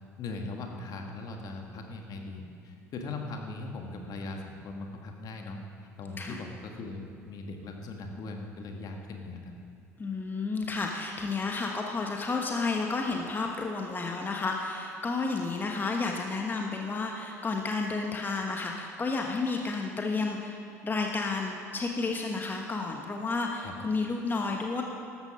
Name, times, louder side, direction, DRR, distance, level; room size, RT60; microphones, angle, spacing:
voice 1, 0.2-5.6 6.0-9.5 23.6-23.8, left 3 dB, 45° left, 3 dB, 1.7 m, -39 dB
voice 2, 10.0-20.6 20.8-24.8, left 3 dB, 20° left, 1 dB, 1.3 m, -31 dB
14.0 x 12.5 x 5.4 m, 2.4 s
figure-of-eight pair, 65°, 9 cm